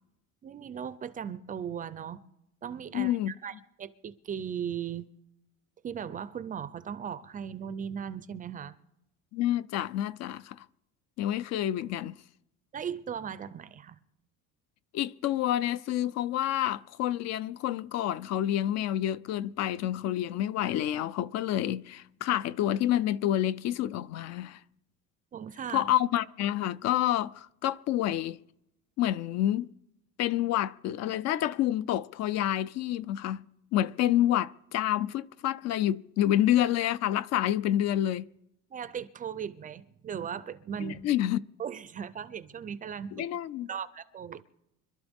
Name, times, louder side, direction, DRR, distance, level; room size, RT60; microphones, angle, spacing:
voice 1, 0.4-2.2 2.6-5.1 5.8-8.7 12.7-14.0 25.3-25.9 38.7-41.1 41.6-43.2 43.7-44.4, right 8 dB, 25° right, 0.4 m, -37 dB
voice 2, 2.9-3.3 9.3-10.6 11.2-12.2 14.9-24.6 25.7-28.4 29.0-29.7 30.2-33.4 33.7-38.3 40.8-41.4 43.1-43.7, left 12 dB, 55° left, 0.5 m, -28 dB
26.0 x 12.0 x 3.5 m
cardioid pair, 175°, 32 cm